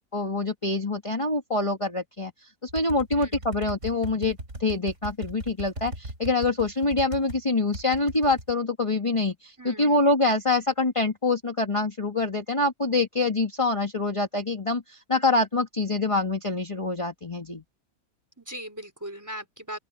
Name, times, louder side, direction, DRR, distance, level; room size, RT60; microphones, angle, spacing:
voice 1, 0.1-2.3 2.6-17.6, left 2 dB, 20° left, 1.9 m, -25 dB
sound 1, 2.7-7.4 7.7-8.5, right 1 dB, 50° right, 6.4 m, -38 dB
voice 2, 3.1-3.4 9.6-10.1 18.4-19.8, right 1 dB, 10° right, 4.1 m, -39 dB
open air
omnidirectional pair, 1.6 m